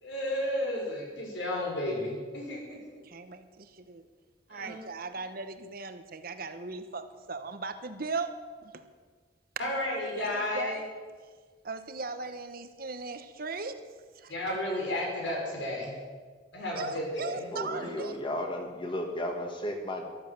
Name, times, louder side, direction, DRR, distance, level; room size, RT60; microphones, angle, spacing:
voice 1, 0.0-2.8 4.5-4.8 9.6-10.8 14.3-15.9 16.5-17.4, left 1 dB, 85° left, -2 dB, 5.8 m, -32 dB
voice 2, 3.0-4.1 4.5-8.9 10.2-10.9 11.6-14.3 16.7-18.2, right 4 dB, 55° right, 9 dB, 1.1 m, -38 dB
voice 3, 17.5-20.1, left 1 dB, 25° left, 3 dB, 2.2 m, -34 dB
14.0 x 12.5 x 7.5 m, 1.5 s
head